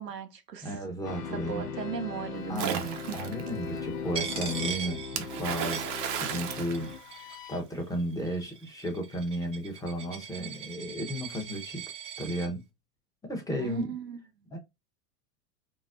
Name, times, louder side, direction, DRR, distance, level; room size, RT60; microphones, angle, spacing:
voice 1, 0.0-0.8 1.3-3.2 13.6-14.5, right 7 dB, 90° right, 0.8 m, -38 dB
voice 2, 0.6-1.7 2.5-2.9 3.1-5.8 6.2-6.9 7.2-11.8 12.2-12.6 13.2-13.9 14.5-14.6, equal, 5° left, 0.9 m, -34 dB
sound 1, 1.0-7.6, left 6 dB, 70° left, 0.9 m, -39 dB
Splash splatter, 2.5-3.5 5.2-7.6, right 8 dB, 45° right, 0.8 m, -34 dB
Coin (dropping), 4.1-6.5 6.7-7.6 8.3-12.5, right 7 dB, 15° right, 0.3 m, -40 dB
4.0 x 2.0 x 2.5 m
hypercardioid pair, 90°, 47 cm